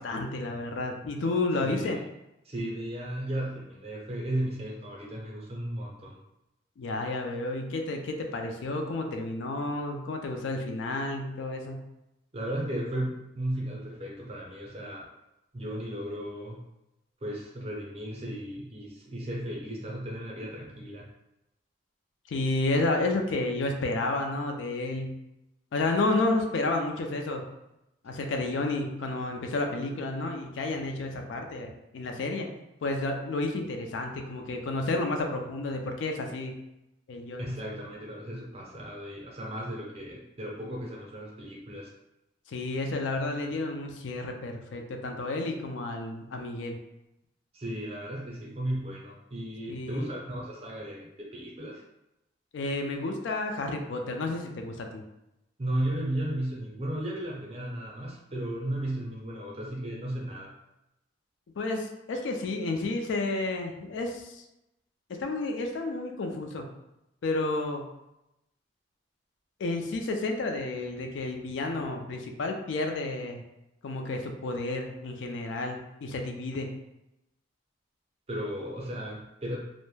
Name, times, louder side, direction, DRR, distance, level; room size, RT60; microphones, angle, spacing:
voice 1, 0.0-2.0 6.8-11.8 22.3-25.1 25.7-27.5 28.0-32.5 32.8-36.5 37.1-37.6 42.5-46.8 49.7-50.1 52.5-55.0 61.6-64.4 65.1-66.7 67.2-67.9 69.6-73.4 73.8-76.7, left 2 dB, 75° left, 3 dB, 0.4 m, -31 dB
voice 2, 1.6-2.0 2.4-6.2 12.3-15.1 15.5-16.7 17.2-21.1 37.4-41.9 47.5-51.8 55.6-60.5 78.3-79.6, right 1 dB, 30° right, -2 dB, 0.5 m, -35 dB
2.1 x 2.0 x 3.1 m, 0.89 s
head